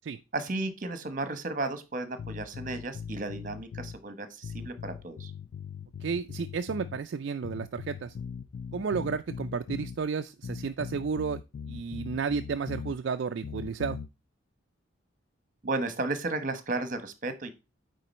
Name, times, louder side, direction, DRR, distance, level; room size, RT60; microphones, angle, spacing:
voice 1, 0.3-5.3 15.6-17.5, right 2 dB, 40° right, 10 dB, 1.0 m, -34 dB
sound 1, 2.2-4.0 4.4-7.0 7.4-10.0 10.4-13.0 13.4-14.1, left 6 dB, 55° left, 0.3 m, -40 dB
voice 2, 6.0-8.1 8.7-11.4 11.7-14.0, right 5 dB, 55° right, 8 dB, 0.3 m, -32 dB
9.3 x 3.8 x 4.2 m, 0.27 s
head